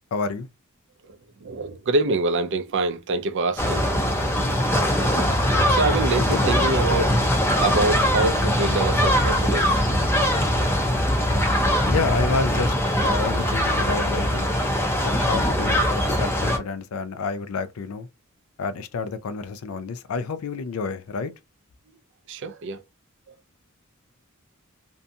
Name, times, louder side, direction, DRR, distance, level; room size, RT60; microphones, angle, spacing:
voice 1, 0.1-0.5 6.2-6.6 11.9-12.7 13.0-14.5 15.0-18.1 18.6-21.3, left 4 dB, 80° left, 0.4 m, -29 dB
voice 2, 1.4-3.9 5.7-7.2 7.6-9.8 22.3-22.8, right 3 dB, 55° right, 0.4 m, -25 dB
sound 1, 3.6-16.6, equal, 10° left, 0.5 m, -21 dB
2.6 x 2.2 x 2.6 m
head